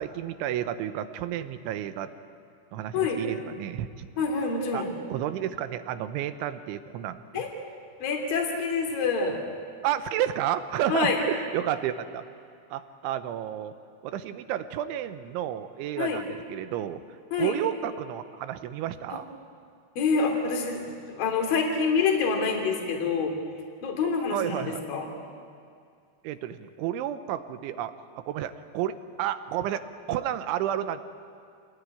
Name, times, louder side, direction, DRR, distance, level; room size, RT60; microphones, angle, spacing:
voice 1, 0.0-2.1 2.7-4.1 4.7-4.8 5.1-7.4 9.8-12.2 12.7-13.7 14.0-17.0 17.4-19.3 24.3-24.8 26.2-27.9 28.3-29.8 30.1-31.0, right 11 dB, 90° right, 10 dB, 3.3 m, -31 dB
voice 2, 4.2-4.9 7.3-7.5 8.0-9.4 10.9-11.2 16.0-16.2 17.3-17.6 19.1-19.2 20.0-23.3 23.8-25.1, left 5 dB, 50° left, 2 dB, 4.5 m, -26 dB
27.5 x 19.5 x 9.9 m, 2.3 s
omnidirectional pair, 5.4 m